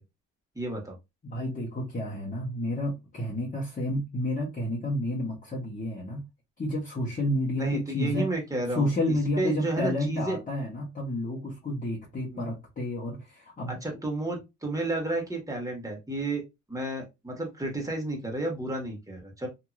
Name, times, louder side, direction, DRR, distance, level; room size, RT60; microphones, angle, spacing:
voice 1, 0.5-0.9 7.6-10.4 12.3-12.4 13.7-16.4 16.7-19.5, right 2 dB, 10° right, 1.5 m, -31 dB
voice 2, 1.2-6.2 6.6-8.3 8.7-13.8, left 1 dB, 25° left, 1.1 m, -30 dB
2.9 x 2.7 x 2.4 m
cardioid pair, 90°, 30 cm